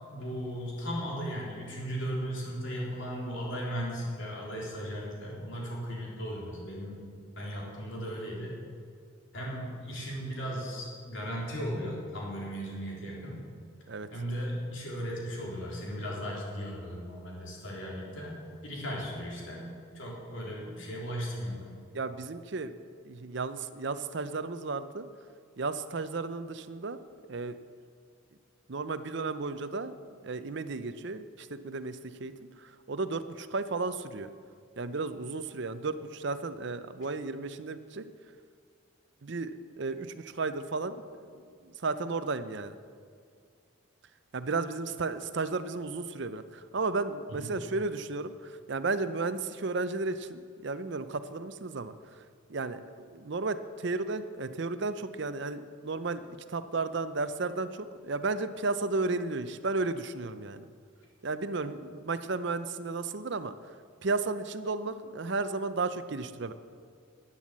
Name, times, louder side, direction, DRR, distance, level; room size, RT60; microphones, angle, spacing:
voice 1, 0.1-7.0 7.3-8.6 9.3-13.4 14.1-19.7 19.9-21.7 47.3-47.5, equal, 60° left, -4 dB, 3.7 m, -36 dB
voice 2, 21.9-22.7 23.0-25.1 25.6-27.0 27.3-27.6 28.7-29.9 30.2-32.3 32.6-34.3 34.8-38.1 39.2-39.5 39.8-42.8 44.3-52.2 52.5-60.7 61.2-63.5 64.0-66.5, right 3 dB, 55° right, 11 dB, 0.6 m, -34 dB
11.5 x 9.9 x 7.4 m, 2.1 s
head